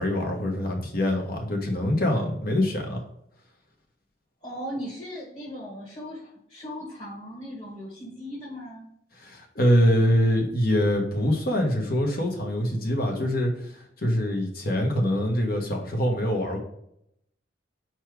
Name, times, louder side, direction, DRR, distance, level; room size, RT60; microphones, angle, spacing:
voice 1, 0.0-3.0 9.2-16.6, equal, 60° left, 2 dB, 1.4 m, -24 dB
voice 2, 4.4-8.9, equal, 30° left, -6 dB, 1.7 m, -38 dB
4.6 x 4.4 x 4.8 m, 0.73 s
head